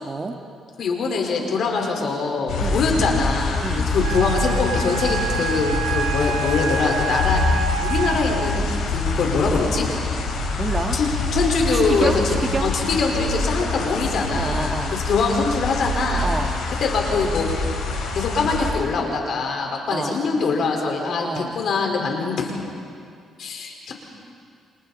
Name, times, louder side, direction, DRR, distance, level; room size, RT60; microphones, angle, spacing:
voice 1, 0.0-0.4 2.5-2.8 3.6-3.9 10.5-11.0 11.7-12.7 14.3-15.0 16.2-16.7 19.9-20.2 21.2-21.5, right 3 dB, 30° right, 4 dB, 1.8 m, -28 dB
voice 2, 0.8-7.4 7.8-8.7 8.9-9.9 10.9-12.3 12.6-16.3 16.8-17.5 18.1-22.5 23.4-23.9, left 4 dB, 65° left, 1 dB, 4.7 m, -23 dB
sound 1, 2.5-18.7, left 3 dB, 85° left, 5.2 m, -25 dB
Wind instrument woodwind instrument, 4.0-8.6, right 4 dB, 80° right, 5.4 m, -28 dB
29.0 x 27.0 x 4.3 m, 2.3 s
cardioid pair, 90°, 0 cm